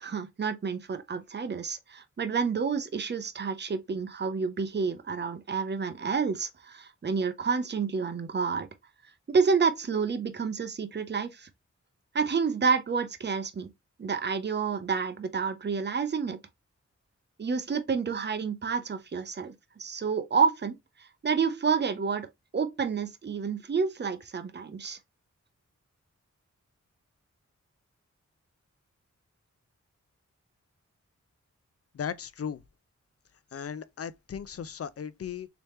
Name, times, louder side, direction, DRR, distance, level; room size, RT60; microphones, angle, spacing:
voice 1, 0.0-8.7 9.3-11.5 12.1-13.7 14.0-16.4 17.4-19.5 19.8-20.8 21.2-22.3 22.5-25.0, right 5 dB, 35° right, 0.6 m, -29 dB
voice 2, 31.9-32.6 33.5-35.5, left 7 dB, 55° left, 0.5 m, -36 dB
3.3 x 3.0 x 3.1 m
wide cardioid pair, 70°, 29 cm